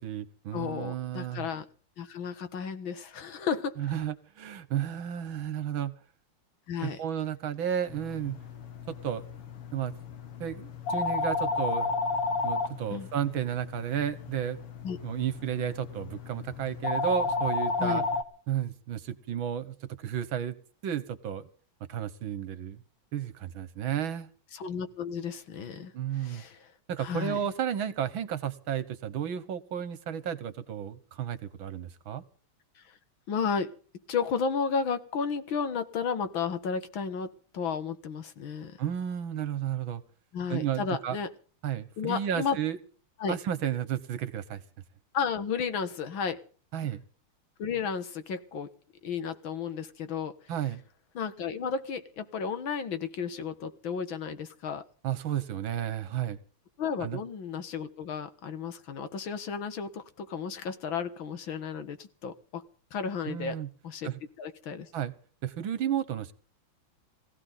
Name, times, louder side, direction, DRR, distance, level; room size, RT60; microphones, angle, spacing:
voice 1, 0.0-1.5 3.8-6.0 6.8-8.4 8.9-9.2 9.7-9.9 10.4-11.9 12.4-14.6 15.0-18.0 18.5-20.6 20.8-21.5 21.9-22.8 23.1-24.3 25.9-26.4 26.9-32.2 38.8-40.0 40.5-41.2 41.6-42.8 43.3-44.6 46.7-47.0 50.5-50.8 55.0-56.4 57.0-57.2 63.3-63.7 64.0-64.2 64.9-65.1 65.4-66.3, right 9 dB, 65° right, 15 dB, 2.0 m, -32 dB
voice 2, 0.5-1.7 2.0-3.8 6.7-7.0 12.9-13.1 14.8-15.0 17.8-18.0 24.5-26.7 27.0-27.4 33.3-33.7 34.1-38.8 40.3-41.3 42.0-42.6 43.2-43.4 45.1-46.4 47.6-48.7 49.0-50.3 51.2-54.8 56.8-62.6 62.9-63.6 63.8-64.1 64.4-64.9, left 6 dB, 65° left, 11 dB, 2.3 m, -33 dB
sound 1, 7.9-18.2, left 4 dB, 85° left, 2.6 m, -33 dB
21.0 x 16.0 x 4.0 m, 0.42 s
omnidirectional pair, 2.4 m